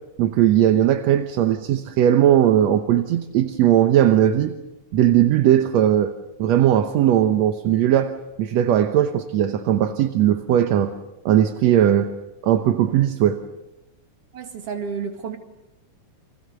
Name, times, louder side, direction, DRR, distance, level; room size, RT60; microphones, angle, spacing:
voice 1, 0.2-4.5 4.9-6.1 6.4-8.1 8.4-10.9 11.3-12.1 12.4-13.4, right 11 dB, 70° right, 9 dB, 2.1 m, -18 dB
voice 2, 14.3-15.4, right 6 dB, 50° right, 5 dB, 3.1 m, -31 dB
29.5 x 26.0 x 6.8 m, 1.0 s
omnidirectional pair, 3.5 m